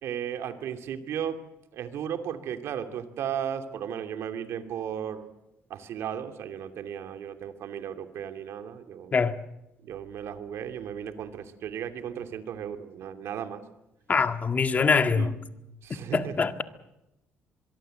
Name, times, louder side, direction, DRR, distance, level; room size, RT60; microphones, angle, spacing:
voice 1, 0.0-1.4 1.7-5.3 5.7-9.1 9.8-13.6 15.1-15.3 15.8-16.4, right 9 dB, 70° right, 2.8 m, -35 dB
voice 2, 14.1-15.3 16.1-16.6, left 5 dB, 35° left, 1.8 m, -23 dB
24.5 x 23.0 x 7.9 m
cardioid pair, 105°, 5 cm